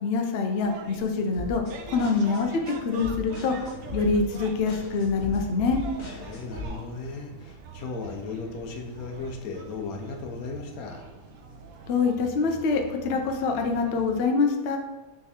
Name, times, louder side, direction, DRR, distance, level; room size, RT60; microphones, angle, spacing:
voice 1, 0.0-5.8 11.9-14.8, left 4 dB, 60° left, 4 dB, 0.6 m, -25 dB
sound 1, 0.5-14.3, right 4 dB, 70° right, 0.9 m, -44 dB
sound 2, 1.3-6.7, left 1 dB, 35° left, 1.2 m, -39 dB
voice 2, 6.0-11.1, left 4 dB, 80° left, 2 dB, 1.1 m, -36 dB
3.6 x 3.2 x 4.1 m, 1.1 s
omnidirectional pair, 1.5 m